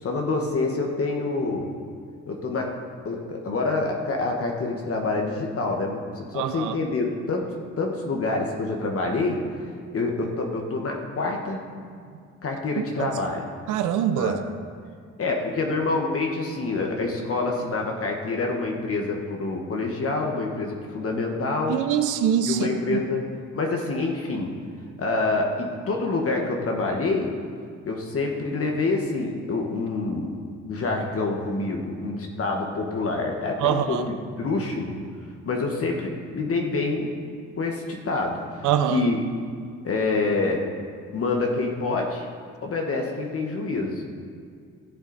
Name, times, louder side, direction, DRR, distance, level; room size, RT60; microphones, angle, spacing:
voice 1, 0.0-1.7 2.3-2.8 3.0-7.5 7.8-9.4 9.9-11.6 12.4-13.5 14.1-14.4 15.2-21.8 22.5-23.3 23.5-24.5 25.0-27.3 27.9-30.3 30.6-35.0 35.4-37.1 37.6-39.2 39.8-40.7 41.1-42.3 42.6-44.0, left 3 dB, 50° left, 1 dB, 1.5 m, -27 dB
voice 2, 6.3-6.7 13.0-13.1 13.7-14.4 21.7-23.0 33.6-34.1 38.6-39.1, right 9 dB, 90° right, 9 dB, 0.7 m, -24 dB
15.5 x 7.2 x 4.1 m, 2.2 s
cardioid pair, 90°, 30 cm